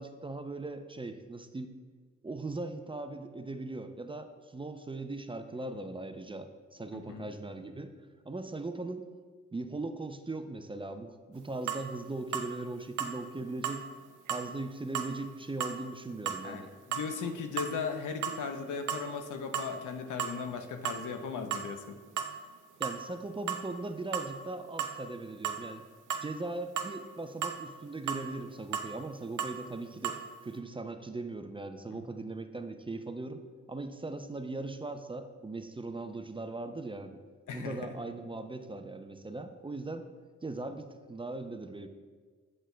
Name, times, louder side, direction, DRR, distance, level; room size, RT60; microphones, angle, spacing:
voice 1, 0.0-1.7 2.2-7.9 8.3-9.1 9.5-13.8 14.3-16.7 22.8-25.9 26.2-33.4 33.7-37.2 37.5-40.1 40.4-41.9, right 2 dB, 15° right, 8 dB, 0.4 m, -39 dB
voice 2, 6.9-7.3 16.4-22.0 31.9-32.0 37.5-37.8, left 5 dB, 80° left, 6 dB, 0.7 m, -37 dB
sound 1, 11.7-11.8 12.3-12.5 13.0-13.2 13.6-13.8 14.3-14.5 15.0-15.1 15.6-15.8 16.3-16.4 16.9-17.1 17.6-17.8 18.1-18.6 18.9-19.1 19.5-19.7 20.2-20.4 20.9-21.0 21.5-21.7 22.2-22.4 22.8-23.0 23.5-23.6 24.1-24.3 24.8-25.0 25.4-25.6 26.1-26.3 26.8-27.0 27.4-27.6 28.1-28.3 28.7-28.9 29.4-29.6 30.0-30.2, right 8 dB, 80° right, 0.6 m, -34 dB
8.0 x 7.5 x 2.2 m, 1.5 s
cardioid pair, 60°, 30 cm